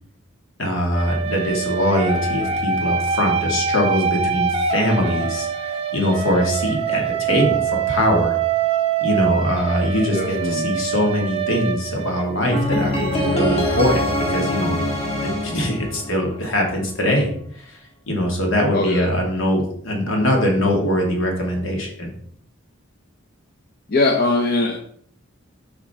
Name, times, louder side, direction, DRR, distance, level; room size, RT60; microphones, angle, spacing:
voice 1, 0.6-8.3 9.0-14.8 15.1-17.3 17.5-17.8 18.1-22.1, left 1 dB, 75° left, 0 dB, 1.9 m, -22 dB
sound 1, 0.9-12.7, right 7 dB, 30° right, 0.6 m, -24 dB
voice 2, 10.1-10.7 18.7-19.1 23.9-24.8, left 2 dB, 45° left, 2 dB, 0.7 m, -20 dB
sound 2, 12.5-16.6, left 1 dB, 30° left, 1.4 m, -23 dB
7.5 x 5.1 x 3.5 m, 0.63 s
head